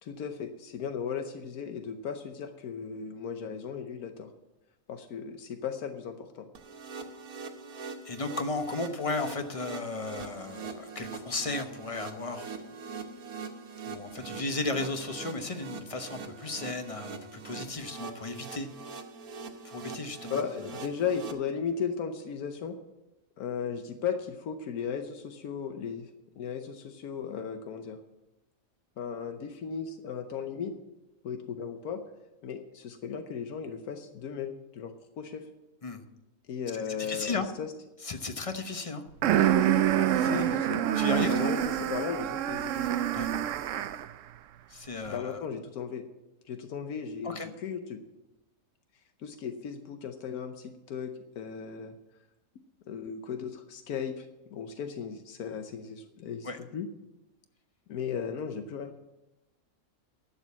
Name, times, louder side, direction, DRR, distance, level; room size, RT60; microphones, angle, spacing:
voice 1, 0.0-4.3 4.9-6.5 20.3-22.8 23.4-26.1 26.4-28.0 29.0-30.7 31.2-32.0 32.4-35.4 36.5-37.7 40.3-40.8 41.3-41.6 41.9-43.0 45.1-46.0 46.5-48.0 49.2-51.9 52.9-54.3 54.5-56.9 57.9-58.9, left 7 dB, 85° left, 7 dB, 1.3 m, -36 dB
sound 1, 6.5-21.3, right 4 dB, 85° right, 1.6 m, -42 dB
voice 2, 8.0-12.5 13.9-18.7 19.6-20.4 35.8-36.0 36.7-37.5 38.0-39.0 40.1-40.5 40.9-41.5 43.1-43.3 44.7-45.4 47.2-47.5 56.4-56.6, left 3 dB, 30° left, 7 dB, 0.8 m, -35 dB
sound 2, 39.2-44.1, right 10 dB, 70° right, 0.9 m, -26 dB
11.5 x 7.1 x 8.3 m, 0.96 s
omnidirectional pair, 1.5 m